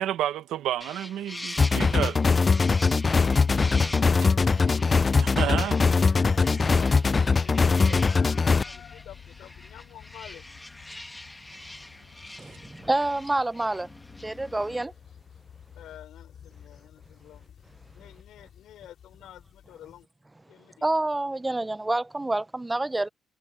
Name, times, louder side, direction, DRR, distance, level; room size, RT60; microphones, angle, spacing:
voice 1, 0.0-2.2 4.5-4.6 5.2-5.7 12.4-12.6, right 12 dB, 85° right, 1.3 m, -30 dB
sound 1, 0.8-14.8, left 1 dB, 10° left, 1.4 m, -43 dB
sound 2, 1.6-8.6, left 4 dB, 30° left, 0.5 m, -21 dB
sound 3, 3.0-20.0, left 8 dB, 60° left, 3.8 m, -47 dB
voice 2, 5.4-10.5 15.7-17.6 17.9-20.1 20.5-20.8, left 12 dB, 80° left, 4.4 m, -49 dB
voice 3, 12.4-13.9 14.2-14.9 20.8-23.1, right 2 dB, 15° right, 0.6 m, -27 dB
cardioid pair, 90°, 0 cm